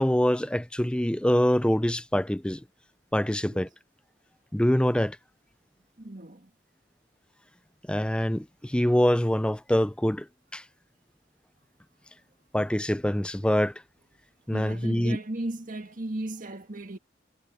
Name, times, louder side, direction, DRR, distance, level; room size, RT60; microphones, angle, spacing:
voice 1, 0.0-2.6 3.1-3.7 4.5-5.2 7.9-10.3 10.5-10.6 12.5-13.7 14.5-15.2, equal, 5° left, 0.5 m, -24 dB
voice 2, 6.0-6.5 14.5-17.0, right 1 dB, 40° right, 1.8 m, -36 dB
head